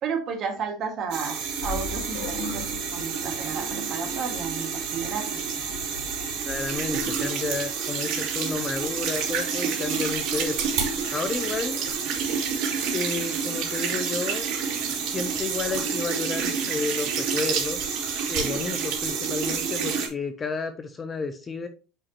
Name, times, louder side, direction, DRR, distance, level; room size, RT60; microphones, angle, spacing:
voice 1, 0.0-2.7 2.9-5.3, right 6 dB, 35° right, 3 dB, 1.9 m, -32 dB
sound 1, 1.1-20.1, right 6 dB, 55° right, 2.8 m, -29 dB
sound 2, 1.6-7.1, left 5 dB, 90° left, 1.6 m, -40 dB
voice 2, 6.4-10.6 11.1-11.9 12.9-14.5 15.0-17.8 18.3-21.7, left 4 dB, 15° left, 9 dB, 0.5 m, -31 dB
8.7 x 5.0 x 2.9 m, 0.33 s
cardioid pair, 175°, 0 cm